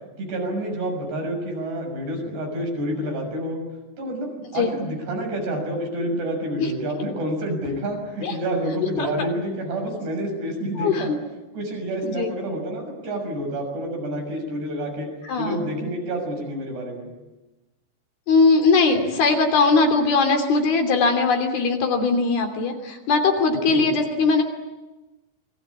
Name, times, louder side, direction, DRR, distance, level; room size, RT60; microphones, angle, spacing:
voice 1, 0.2-3.6 4.0-11.1 11.5-15.1 15.4-17.1 23.7-23.9, right 1 dB, 75° right, 2 dB, 8.7 m, -28 dB
voice 2, 10.8-11.2 12.0-12.3 15.2-15.6 18.3-24.4, left 4 dB, 65° left, 5 dB, 4.8 m, -20 dB
28.0 x 22.0 x 8.6 m, 1.1 s
omnidirectional pair, 4.8 m